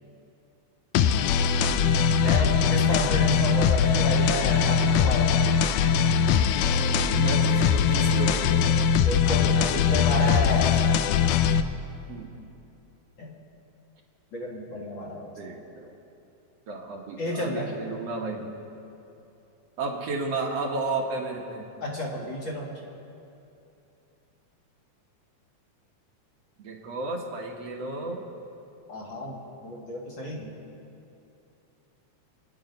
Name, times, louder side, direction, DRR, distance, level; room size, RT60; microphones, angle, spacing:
sound 1, 0.9-11.6, left 7 dB, 90° left, 2.1 m, -21 dB
voice 1, 2.2-5.4 5.8-5.9 9.1-10.9 13.2-13.3 14.3-15.3 17.2-17.7 21.8-22.8 28.9-30.5, left 1 dB, 45° left, -2 dB, 2.1 m, -31 dB
voice 2, 6.5-8.6 12.1-12.3 15.4-15.9 16.7-18.5 19.8-21.7 26.6-28.3, right 3 dB, 60° right, 0 dB, 2.2 m, -33 dB
28.0 x 9.7 x 5.3 m, 2.8 s
omnidirectional pair, 3.5 m